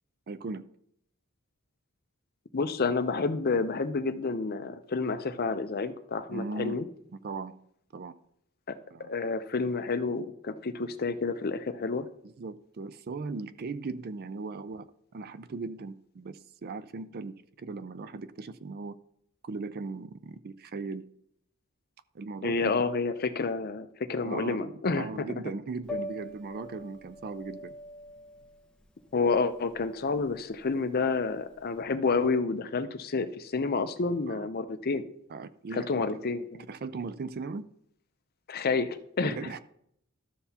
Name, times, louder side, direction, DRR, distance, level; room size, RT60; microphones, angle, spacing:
voice 1, 0.3-0.6 6.3-6.8 7.2-7.5 7.9-8.1 8.9-9.2 12.2-14.9 15.1-18.9 19.4-21.1 22.1-22.8 24.2-27.7 34.3-34.5 35.3-36.0 36.7-37.6 39.2-39.6, right 3 dB, 45° right, 0.4 m, -38 dB
voice 2, 2.5-6.8 8.7-12.1 22.4-25.1 29.1-35.0 35.7-36.7 38.5-39.5, left 4 dB, 45° left, 0.6 m, -29 dB
Piano, 25.8-31.8, left 1 dB, 5° left, 1.0 m, -43 dB
12.5 x 6.8 x 2.8 m
head